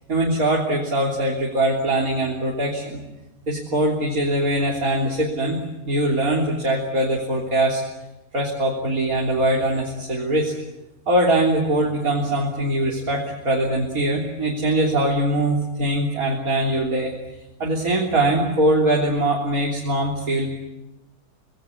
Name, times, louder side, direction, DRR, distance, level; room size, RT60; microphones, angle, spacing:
voice 1, 0.1-3.0 3.5-5.6 5.9-7.8 8.3-10.6 11.1-17.1 17.6-20.5, right 1 dB, 70° right, -2 dB, 3.8 m, -22 dB
26.0 x 19.5 x 9.7 m, 1.0 s
omnidirectional pair, 1.6 m